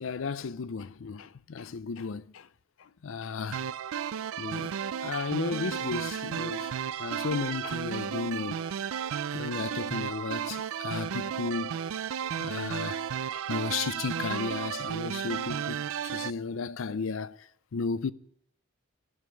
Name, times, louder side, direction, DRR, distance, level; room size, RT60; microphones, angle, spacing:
voice 1, 0.0-2.5 3.0-3.6 4.4-4.7 5.0-6.7 7.0-8.6 9.3-11.8 12.4-13.0 13.5-17.4 17.7-18.1, left 5 dB, 65° left, 0.5 m, -34 dB
sound 1, 3.5-16.3, right 8 dB, 75° right, 0.4 m, -33 dB
12.5 x 7.0 x 9.5 m
head